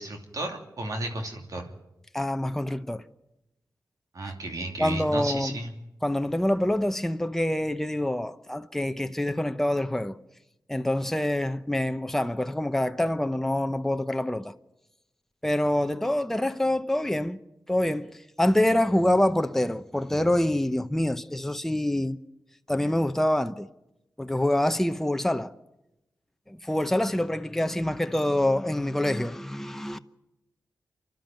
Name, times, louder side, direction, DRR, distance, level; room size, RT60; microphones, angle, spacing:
voice 1, 0.0-1.7 4.1-5.7, right 2 dB, 60° right, 2.8 m, -33 dB
voice 2, 2.1-3.0 4.8-5.5 6.0-10.2 10.7-14.5 15.4-17.4 17.7-22.2 22.7-23.7 24.2-25.5 26.5-30.0, left 1 dB, 5° left, 0.8 m, -26 dB
28.0 x 12.0 x 9.2 m
cardioid pair, 75°, 7 cm